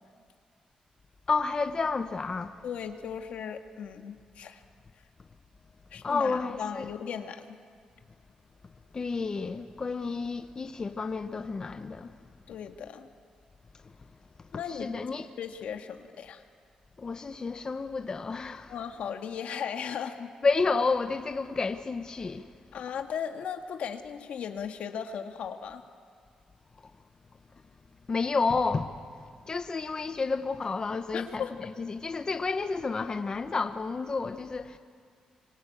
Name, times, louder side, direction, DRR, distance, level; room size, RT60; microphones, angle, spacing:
voice 1, 1.3-2.5 6.0-6.9 8.9-12.2 13.8-13.9 14.7-15.3 17.0-18.7 20.4-22.5 28.1-29.0 29.5-31.4 31.8-34.8, left 4 dB, 35° left, 0.9 m, -30 dB
voice 2, 2.6-4.6 5.9-7.5 12.5-13.1 14.5-14.9 15.4-16.4 18.7-20.3 22.7-25.8 31.1-31.5, left 7 dB, 80° left, 1.7 m, -37 dB
26.5 x 24.5 x 8.5 m
cardioid pair, 105°, 2 cm